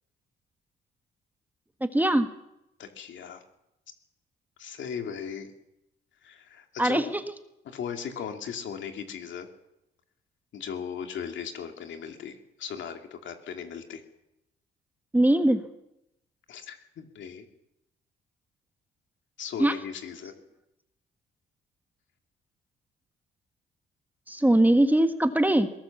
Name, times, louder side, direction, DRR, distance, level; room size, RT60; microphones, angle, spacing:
voice 1, 1.8-2.3 6.8-7.2 15.1-15.7 19.6-19.7 24.3-25.7, right 1 dB, 10° right, 8 dB, 1.5 m, -21 dB
voice 2, 2.8-3.4 4.6-5.5 6.2-7.1 7.6-9.5 10.5-14.0 16.5-17.4 19.4-20.3, left 7 dB, 70° left, 5 dB, 2.8 m, -37 dB
21.0 x 18.5 x 7.3 m, 0.86 s
cardioid pair, 90°, 20 cm